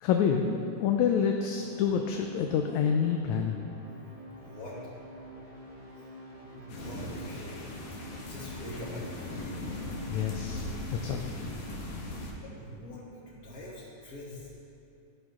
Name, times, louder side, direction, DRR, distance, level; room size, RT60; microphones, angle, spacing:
voice 1, 0.0-3.6 10.1-10.7 10.9-11.3, left 7 dB, 75° left, 4 dB, 1.8 m, -27 dB
sound 1, 1.5-10.8, right 1 dB, 35° right, 0.5 m, -48 dB
voice 2, 4.3-4.8 6.0-6.1 6.5-7.8 8.2-9.6 12.4-14.5, left 1 dB, 30° left, -6 dB, 2.5 m, -44 dB
sound 2, 6.7-12.3, left 2 dB, 60° left, 2.5 m, -39 dB
15.0 x 11.0 x 3.7 m, 2.7 s
omnidirectional pair, 3.8 m